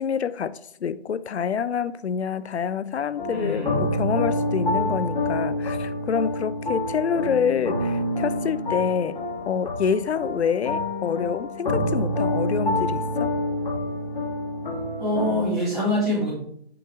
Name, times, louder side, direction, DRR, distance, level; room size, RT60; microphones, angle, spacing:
voice 1, 0.0-9.2 9.5-13.3, left 7 dB, 85° left, 0.5 m, -27 dB
sound 1, 3.2-15.4, left 1 dB, 50° left, 2.6 m, -27 dB
voice 2, 3.3-3.8 15.0-16.4, left 1 dB, ahead, 2.0 m, -25 dB
7.7 x 5.0 x 3.6 m
figure-of-eight pair, 160°, 32 cm